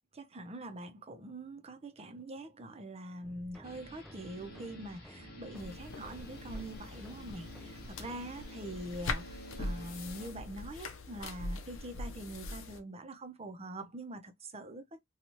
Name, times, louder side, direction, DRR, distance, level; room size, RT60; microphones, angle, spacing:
voice 1, 0.2-15.0, right 1 dB, 30° right, 0.7 m, -44 dB
sound 1, 3.2-8.3, equal, ahead, 0.3 m, -54 dB
sound 2, 3.6-10.3, equal, 50° left, 1.0 m, -52 dB
sound 3, 5.6-12.8, left 2 dB, 75° left, 0.6 m, -42 dB
2.8 x 2.3 x 2.9 m
head